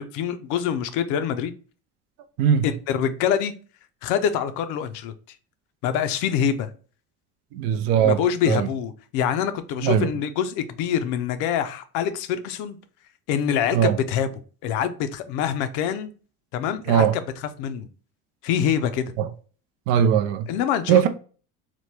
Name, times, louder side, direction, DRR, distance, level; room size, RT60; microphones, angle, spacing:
voice 1, 0.0-1.5 2.6-3.5 4.0-5.1 5.8-6.7 8.0-12.8 13.3-14.3 14.6-16.1 16.5-17.9 18.4-19.1 20.5-21.1, left 8 dB, 75° left, 0.5 m, -25 dB
voice 2, 7.5-8.2 8.5-8.7 9.8-10.1 13.7-14.0 16.9-17.2 19.2-19.3 19.9-20.5 20.9-21.1, right 9 dB, 85° right, 0.5 m, -19 dB
3.0 x 2.1 x 3.1 m
supercardioid pair, 105°, 31 cm